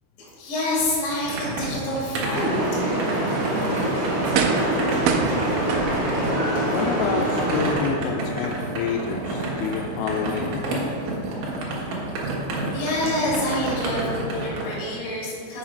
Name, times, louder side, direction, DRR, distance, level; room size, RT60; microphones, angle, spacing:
voice 1, 0.2-3.2 3.7-3.8 12.7-15.6, left 1 dB, 60° left, -6 dB, 3.9 m, -27 dB
sound 1, 0.7-14.7, right 2 dB, 65° right, 2.3 m, -30 dB
sound 2, 2.3-7.7, right 1 dB, 45° right, 1.7 m, -25 dB
sound 3, 4.3-4.8 5.1-6.3 6.8-6.9, right 6 dB, 85° right, 3.0 m, -25 dB
voice 2, 6.7-10.7, left 6 dB, 85° left, 2 dB, 2.8 m, -28 dB
7.4 x 6.3 x 5.1 m, 2.5 s
omnidirectional pair, 5.6 m